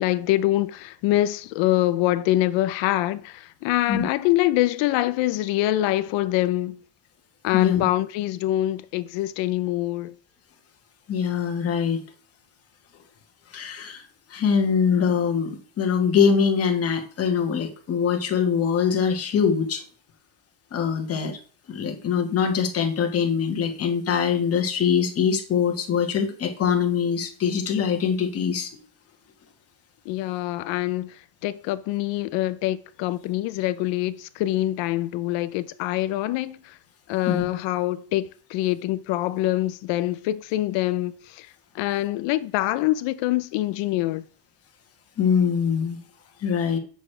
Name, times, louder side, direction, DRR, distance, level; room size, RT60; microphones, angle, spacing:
voice 1, 0.0-6.8 7.4-10.1 30.1-31.1 31.4-36.7 37.1-41.5 41.7-44.2, left 15 dB, 60° left, 0.7 m, -25 dB
voice 2, 7.5-7.8 11.1-12.0 13.5-14.0 14.3-19.8 20.7-21.4 21.7-28.7 37.3-37.4 45.2-46.0 46.4-46.8, left 7 dB, 30° left, 1.4 m, -23 dB
8.2 x 6.4 x 3.3 m
cardioid pair, 165°, 49 cm